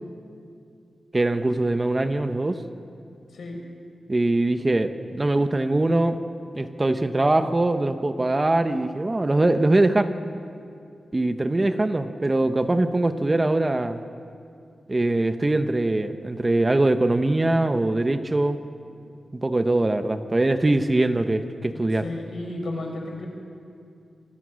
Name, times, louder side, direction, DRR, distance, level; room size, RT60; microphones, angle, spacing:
voice 1, 1.1-2.6 4.1-6.2 6.5-10.1 11.1-14.0 14.9-18.6 19.3-22.0, right 2 dB, 20° right, 9 dB, 0.9 m, -22 dB
voice 2, 3.3-3.6 21.6-23.3, left 2 dB, 65° left, 2 dB, 5.2 m, -34 dB
28.0 x 24.0 x 6.4 m, 2.5 s
wide cardioid pair, 155°, 0 cm